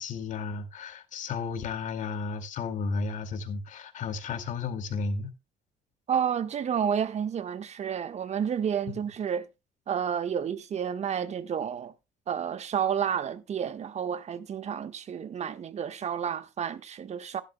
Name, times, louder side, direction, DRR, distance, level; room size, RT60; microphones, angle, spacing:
voice 1, 0.0-5.3 8.9-9.0, left 4 dB, 55° left, 2.4 m, -33 dB
voice 2, 6.1-9.5 9.9-11.9 12.3-17.4, right 8 dB, 45° right, 1.5 m, -30 dB
15.5 x 11.5 x 2.3 m
hypercardioid pair, 55°, 16 cm